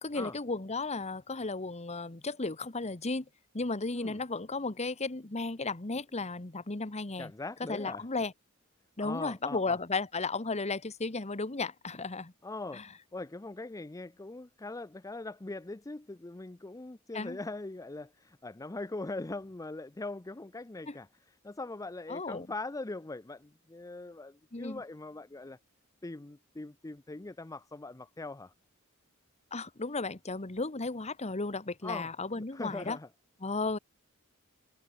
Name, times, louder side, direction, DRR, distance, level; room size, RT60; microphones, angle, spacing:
voice 1, 0.0-3.2 3.5-7.3 7.7-8.3 9.0-12.3 12.7-12.9 17.1-17.4 20.9-21.0 22.1-22.5 24.5-24.8 29.5-33.0 33.4-33.8, left 3 dB, 30° left, 1.3 m, -34 dB
voice 2, 7.2-8.1 9.0-9.8 12.4-12.8 13.1-25.6 26.0-28.5 31.8-32.1 32.4-33.1, left 2 dB, 15° left, 0.5 m, -41 dB
head